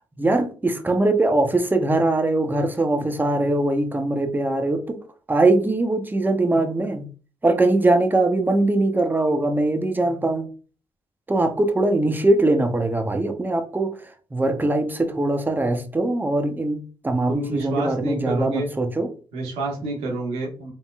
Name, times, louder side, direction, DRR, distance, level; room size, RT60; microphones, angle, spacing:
voice 1, 0.2-5.0 5.3-7.1 7.4-10.5 11.3-14.0 14.3-19.1, right 2 dB, 20° right, 6 dB, 0.9 m, -21 dB
voice 2, 17.3-18.7 19.3-20.7, right 2 dB, 80° right, -1 dB, 1.5 m, -28 dB
3.7 x 3.7 x 2.4 m, 0.37 s
supercardioid pair, 55°, 10 cm